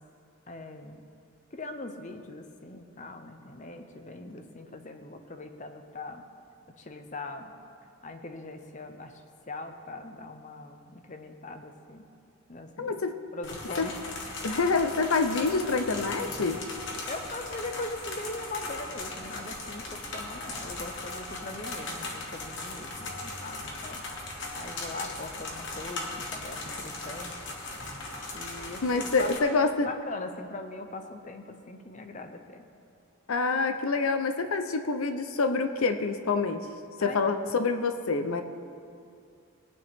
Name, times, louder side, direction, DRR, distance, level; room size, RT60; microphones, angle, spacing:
voice 1, 0.5-1.0 1.5-6.2 6.8-7.6 8.0-9.2 9.5-12.1 12.5-13.0 13.3-14.0 17.1-24.0 24.6-27.5 27.8-27.9 28.3-32.6 37.0-37.5, left 2 dB, 35° left, 6 dB, 0.8 m, -41 dB
voice 2, 12.8-13.2 13.8-13.9 14.4-16.6 28.8-29.9 33.3-36.7 37.0-38.4, left 4 dB, 85° left, 8 dB, 0.7 m, -27 dB
sound 1, 13.4-29.4, left 2 dB, 60° left, 1.5 m, -38 dB
19.5 x 9.4 x 3.6 m, 2.5 s
head